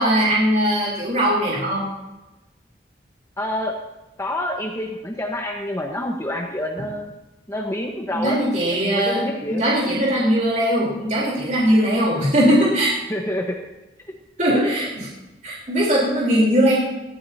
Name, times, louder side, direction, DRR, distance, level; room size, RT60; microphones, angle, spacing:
voice 1, 0.0-1.8 8.1-9.2 9.5-12.9 14.4-15.1 15.4-16.8, equal, 45° right, -5 dB, 3.6 m, -20 dB
voice 2, 3.4-3.8 4.2-7.1 7.5-9.6 13.1-13.6, left 1 dB, 15° left, 1 dB, 1.1 m, -27 dB
19.0 x 15.0 x 2.8 m, 1.0 s
head